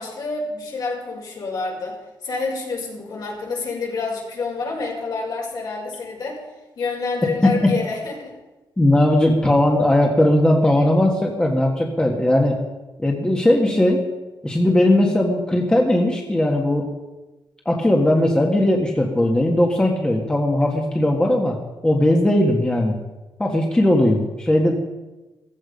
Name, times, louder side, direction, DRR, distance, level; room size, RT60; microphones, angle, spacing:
voice 1, 0.0-1.9 2.2-6.4 6.8-8.3, left 4 dB, 60° left, -1 dB, 4.9 m, -28 dB
voice 2, 8.8-12.6 13.0-14.0 14.4-16.9 17.6-21.6 21.8-22.9 23.4-24.7, left 1 dB, 10° left, 0 dB, 1.6 m, -18 dB
15.5 x 15.5 x 5.3 m, 1.1 s
wide cardioid pair, 160°, 8 cm